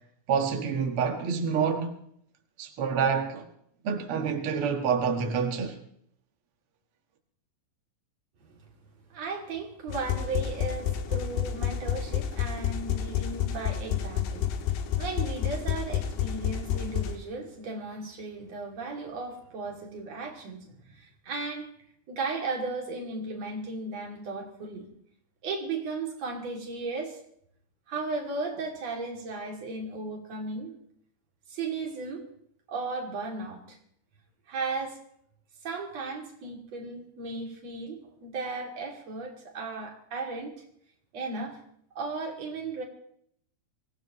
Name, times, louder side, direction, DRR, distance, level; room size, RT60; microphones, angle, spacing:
voice 1, 0.3-1.9 2.6-3.4 3.8-5.8, right 6 dB, 90° right, 1.2 m, -27 dB
voice 2, 9.1-21.7 22.1-24.9 25.4-27.2 27.9-30.8 31.5-32.2 32.7-33.8 34.5-35.0 35.6-40.5 41.1-41.6 41.9-42.8, right 3 dB, 40° right, 3.4 m, -35 dB
sound 1, 9.9-17.2, left 9 dB, 70° left, 3.0 m, -30 dB
24.5 x 18.0 x 3.1 m
omnidirectional pair, 5.2 m